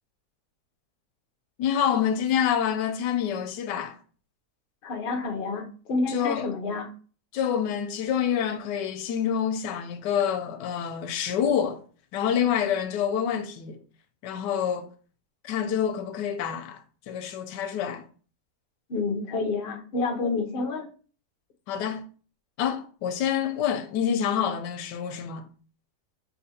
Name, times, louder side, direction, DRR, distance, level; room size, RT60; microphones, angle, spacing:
voice 1, 1.6-4.0 6.1-6.5 7.3-11.8 12.1-13.8 14.2-14.9 15.4-18.0 21.7-22.0 22.6-25.5, left 8 dB, 85° left, 1.2 m, -27 dB
voice 2, 4.8-6.9 18.9-20.9, left 3 dB, 60° left, 0.6 m, -29 dB
5.7 x 2.8 x 2.7 m
omnidirectional pair, 1.8 m